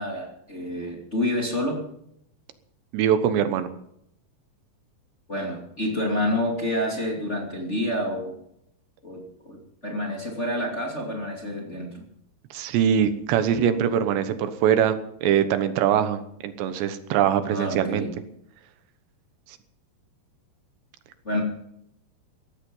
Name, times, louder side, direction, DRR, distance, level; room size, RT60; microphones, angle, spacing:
voice 1, 0.0-1.8 5.3-8.3 9.0-12.0 17.5-18.1 21.2-21.4, left 1 dB, 20° left, -1 dB, 2.3 m, -28 dB
voice 2, 2.9-3.7 12.5-18.1, right 9 dB, 85° right, 10 dB, 3.3 m, -23 dB
17.0 x 14.0 x 5.5 m, 0.74 s
omnidirectional pair, 4.9 m